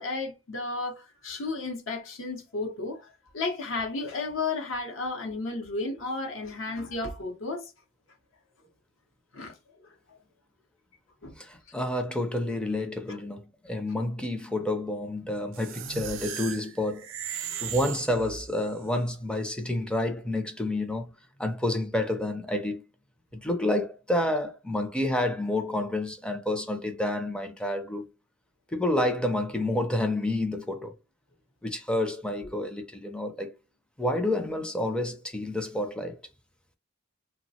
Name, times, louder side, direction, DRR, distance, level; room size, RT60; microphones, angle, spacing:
voice 1, 0.0-7.7 9.3-9.5 9.8-10.2 11.2-11.4 13.1-13.2, left 3 dB, 70° left, 0.7 m, -33 dB
voice 2, 11.4-17.1 17.3-21.1 21.4-22.8 23.3-28.1 28.7-30.9 31.6-33.6 34.0-36.2, left 1 dB, 5° left, 0.4 m, -29 dB
sound 1, 15.5-18.8, right 9 dB, 65° right, 0.4 m, -37 dB
3.0 x 2.0 x 2.7 m
head